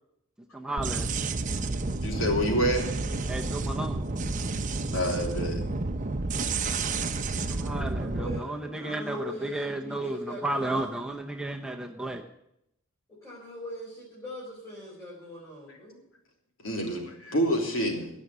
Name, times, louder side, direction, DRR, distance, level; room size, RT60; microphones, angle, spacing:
voice 1, 0.5-1.2 3.3-4.1 7.5-12.2, right 2 dB, 5° right, 1 dB, 0.8 m, -33 dB
sound 1, 0.8-8.4, right 3 dB, 40° right, 0.8 m, -30 dB
voice 2, 2.0-2.8 4.9-5.6 16.6-18.1, equal, 75° left, 1 dB, 3.2 m, -27 dB
voice 3, 7.3-10.9 13.1-16.0, left 2 dB, 15° left, -7 dB, 4.8 m, -41 dB
17.5 x 6.2 x 9.5 m, 0.81 s
head